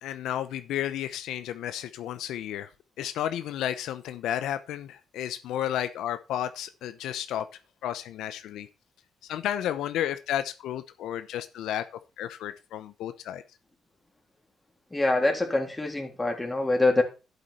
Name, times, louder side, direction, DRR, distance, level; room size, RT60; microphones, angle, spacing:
voice 1, 0.0-2.7 3.0-7.5 7.8-8.7 9.2-11.8 12.2-13.4, left 11 dB, 85° left, 0.8 m, -32 dB
voice 2, 14.9-17.0, left 2 dB, 15° left, 3.4 m, -25 dB
11.0 x 8.3 x 4.4 m
cardioid pair, 90°, 0 cm